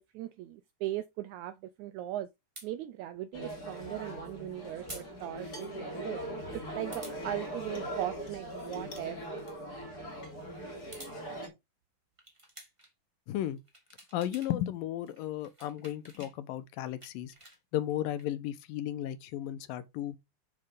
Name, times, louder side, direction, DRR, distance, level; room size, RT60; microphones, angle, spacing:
voice 1, 0.1-2.3 2.6-6.2 6.5-9.2, right 13 dB, 80° right, 1.7 m, -38 dB
sound 1, 2.6-2.7 4.9-5.1 5.4-5.5 6.9-7.2 8.7-9.1 9.4-9.6 10.7-11.2 12.2-12.9 13.5-14.5 14.8-16.3 16.7-18.3, right 1 dB, 10° right, 2.0 m, -50 dB
sound 2, 3.3-11.5, right 1 dB, 25° left, 3.7 m, -40 dB
voice 2, 13.3-13.6 14.1-17.3 17.7-20.2, left 12 dB, 80° left, 2.5 m, -34 dB
7.7 x 6.7 x 3.6 m
omnidirectional pair, 4.0 m